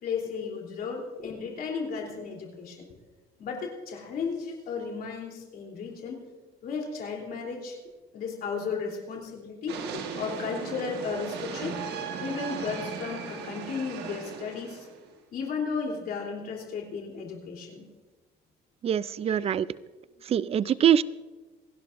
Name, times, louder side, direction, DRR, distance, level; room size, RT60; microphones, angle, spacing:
voice 1, 0.0-2.9 3.4-6.2 6.6-7.8 8.1-11.7 12.2-14.8 15.3-17.8 19.2-19.5, left 5 dB, 60° left, 0 dB, 3.4 m, -34 dB
sound 1, 9.7-15.1, right 6 dB, 80° right, 1.6 m, -37 dB
voice 2, 18.8-19.7 20.3-21.0, right 9 dB, 35° right, 18 dB, 0.4 m, -23 dB
28.0 x 11.5 x 2.6 m, 1.3 s
cardioid pair, 110°, 17 cm